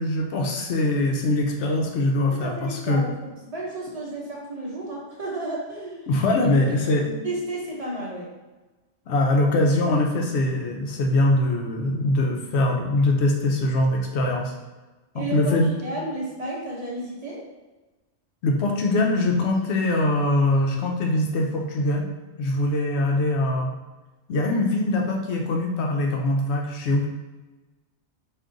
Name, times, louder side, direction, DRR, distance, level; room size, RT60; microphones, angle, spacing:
voice 1, 0.0-3.0 6.1-7.3 9.1-14.5 15.1-15.7 18.4-22.1 22.4-23.7 24.3-27.1, left 2 dB, 70° left, 1 dB, 0.9 m, -22 dB
voice 2, 2.3-6.1 6.4-6.8 7.2-8.3 15.1-15.6 15.8-17.4, right 2 dB, 35° right, -6 dB, 0.9 m, -32 dB
3.6 x 2.6 x 3.8 m, 1.2 s
omnidirectional pair, 1.2 m